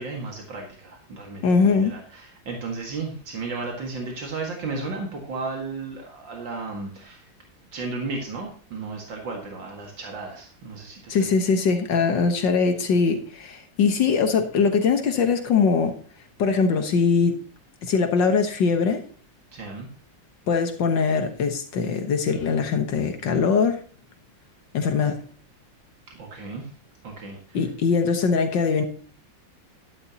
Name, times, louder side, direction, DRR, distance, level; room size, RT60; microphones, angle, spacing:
voice 1, 0.0-7.3 7.7-11.4 19.5-19.9 26.1-26.7 27.0-27.7, right 3 dB, 80° right, 0 dB, 2.7 m, -34 dB
voice 2, 1.4-1.9 11.1-16.0 16.4-17.4 17.8-19.0 20.5-23.8 24.7-25.2 27.5-28.8, left 5 dB, 75° left, 6 dB, 1.9 m, -21 dB
12.5 x 11.0 x 2.9 m, 0.43 s
omnidirectional pair, 2.0 m